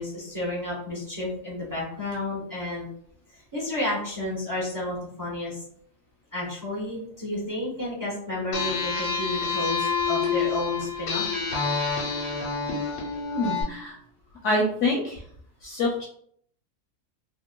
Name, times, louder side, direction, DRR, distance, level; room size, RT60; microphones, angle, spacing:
voice 1, 0.0-2.9 3.3-5.6 6.3-11.3, left 1 dB, 20° right, -6 dB, 0.5 m, -31 dB
sound 1, 8.5-13.6, left 5 dB, 85° left, 1.3 m, -28 dB
voice 2, 13.3-14.0 14.4-15.2 15.6-16.0, left 2 dB, 65° left, -3 dB, 0.7 m, -26 dB
2.9 x 2.1 x 2.2 m, 0.63 s
omnidirectional pair, 1.7 m